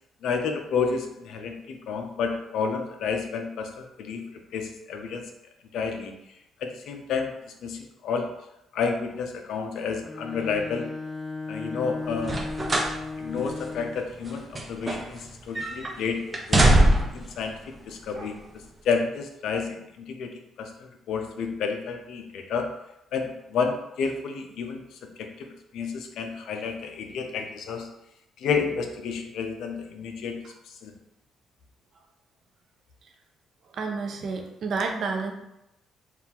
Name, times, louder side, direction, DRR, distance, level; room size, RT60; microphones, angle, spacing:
voice 1, 0.2-4.2 4.5-5.2 5.7-6.1 6.6-7.4 7.6-8.3 8.7-10.9 11.5-12.4 13.2-16.7 17.1-18.4 18.8-22.7 23.1-27.9 28.4-30.9, left 5 dB, 75° left, 5 dB, 0.5 m, -30 dB
Bowed string instrument, 10.0-14.2, left 3 dB, 20° left, 0.5 m, -36 dB
sound 1, 12.2-13.0 13.4-13.5 14.2-15.3 15.5-15.9 16.3-17.3 18.1-18.3, right 1 dB, 25° right, 0.7 m, -22 dB
voice 2, 33.7-35.3, right 4 dB, 60° right, 3 dB, 0.7 m, -29 dB
3.7 x 2.5 x 4.3 m, 0.88 s
cardioid pair, 90°, 0 cm